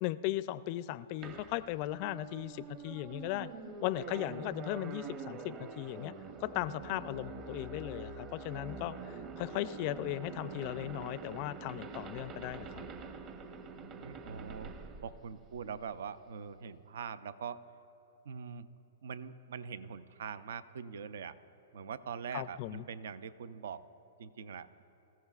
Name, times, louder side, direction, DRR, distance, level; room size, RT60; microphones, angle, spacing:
voice 1, 0.0-3.5 3.8-6.1 6.4-12.9 22.3-22.8, left 15 dB, 45° left, 16 dB, 0.4 m, -37 dB
sound 1, 1.2-16.0, right 4 dB, 30° right, 0.9 m, -45 dB
voice 2, 13.8-14.7 15.0-17.6 18.2-18.7 19.0-21.4 21.7-23.8 24.2-24.8, right 6 dB, 75° right, 14 dB, 0.5 m, -43 dB
23.5 x 14.5 x 2.4 m, 3.0 s
hypercardioid pair, 130°, 0 cm